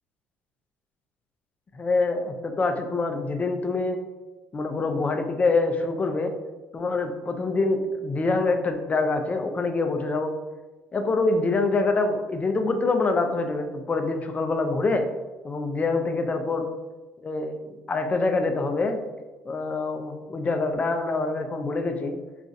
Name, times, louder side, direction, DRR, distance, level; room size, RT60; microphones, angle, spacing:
voice 1, 1.7-4.0 4.5-6.3 6.7-10.3 10.9-15.0 15.4-16.7 17.2-19.0 19.5-22.2, left 3 dB, 30° left, 6 dB, 0.4 m, -25 dB
3.7 x 2.4 x 2.5 m, 1.2 s
supercardioid pair, 70°, 5 cm